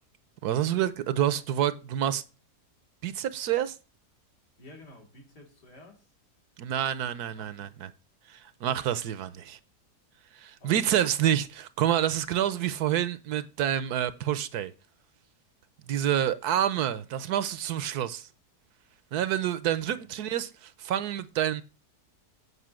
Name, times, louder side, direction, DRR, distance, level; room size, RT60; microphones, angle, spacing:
voice 1, 0.4-2.2 3.0-3.8 6.6-7.9 8.3-9.6 10.3-14.7 15.9-18.3 19.1-21.6, right 11 dB, 75° right, 1.2 m, -28 dB
voice 2, 4.6-6.1 7.3-7.8 10.6-11.0 19.9-20.1, left 1 dB, 80° left, 3.8 m, -51 dB
8.2 x 5.5 x 7.5 m
omnidirectional pair, 1.8 m